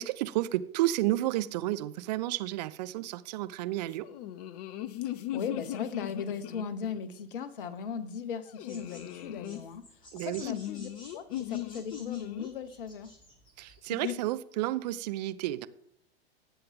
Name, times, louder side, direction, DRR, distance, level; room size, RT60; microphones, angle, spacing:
voice 1, 0.0-4.1 10.1-10.4 13.6-15.7, right 15 dB, 40° right, 13 dB, 0.7 m, -31 dB
sound 1, 4.0-7.1 8.5-9.6 10.4-12.5 13.9-14.2, left 13 dB, 40° left, 0.7 m, -38 dB
voice 2, 5.0-13.1, left 6 dB, 55° left, 13 dB, 1.2 m, -38 dB
sound 2, 8.7-13.8, left 1 dB, 15° left, 5.6 m, -53 dB
18.5 x 7.6 x 3.7 m, 0.71 s
figure-of-eight pair, 95°, 31 cm